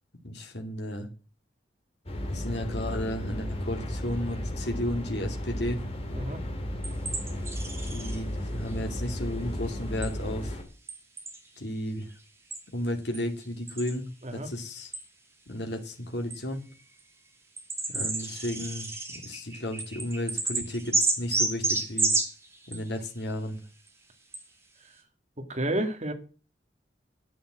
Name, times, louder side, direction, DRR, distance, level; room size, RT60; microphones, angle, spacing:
voice 1, 0.2-1.1 2.3-5.8 7.8-10.6 11.6-12.1 12.7-14.9 15.5-16.6 17.9-22.1 22.7-23.6, left 1 dB, 65° left, 3 dB, 2.4 m, -33 dB
sound 1, 2.1-10.6, equal, 35° left, 2.8 m, -34 dB
sound 2, 6.8-8.2 10.0-10.1 10.9-11.4 12.5-12.6 13.1-13.2 13.7-13.9 14.9-15.0 16.3-16.4 17.0-17.1 17.6-22.9 23.9-24.0 24.3-24.4, right 3 dB, 15° right, 2.5 m, -30 dB
voice 2, 25.4-26.1, right 1 dB, 40° right, 5 dB, 2.1 m, -31 dB
11.0 x 8.8 x 7.7 m, 0.36 s
head